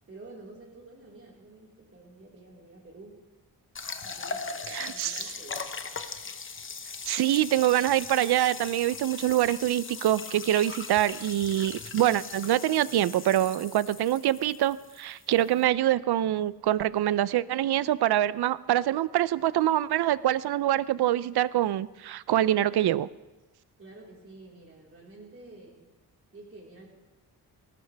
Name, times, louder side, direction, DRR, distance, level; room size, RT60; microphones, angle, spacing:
voice 1, 0.1-3.2 4.0-5.7 23.8-25.8 26.3-26.9, right 2 dB, 35° right, -3 dB, 4.3 m, -49 dB
sound 1, 3.8-15.7, left 4 dB, 30° left, 0.9 m, -39 dB
voice 2, 4.7-5.3 7.1-23.1, right 13 dB, 80° right, 18 dB, 0.5 m, -25 dB
19.5 x 18.0 x 3.4 m, 1.1 s
wide cardioid pair, 150°, 38 cm